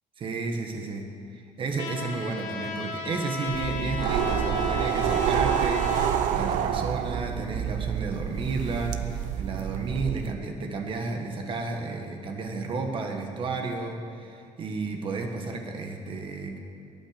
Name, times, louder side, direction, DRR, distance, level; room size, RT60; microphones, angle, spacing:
voice 1, 0.2-16.6, right 3 dB, 40° right, 3 dB, 1.6 m, -32 dB
Trumpet, 1.8-6.1, left 5 dB, 75° left, 2.4 m, -35 dB
sound 1, 3.5-10.3, right 9 dB, 75° right, 0.9 m, -28 dB
20.5 x 9.0 x 6.7 m, 2.6 s
cardioid pair, 145°, 13 cm